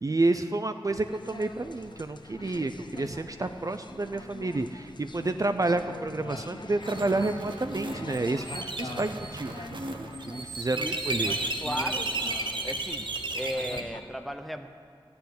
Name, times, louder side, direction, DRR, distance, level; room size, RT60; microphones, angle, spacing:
voice 1, 0.0-9.7 10.2-11.3, right 2 dB, 40° right, 8 dB, 0.4 m, -30 dB
sound 1, 0.9-14.0, left 2 dB, 55° left, 0.7 m, -44 dB
sound 2, 6.8-13.8, right 2 dB, 60° right, 1.0 m, -34 dB
voice 2, 10.7-11.2 11.6-12.1 12.6-13.1 13.3-14.7, equal, ahead, 7 dB, 0.8 m, -35 dB
13.5 x 6.9 x 9.4 m, 2.2 s
wide cardioid pair, 70°, 9 cm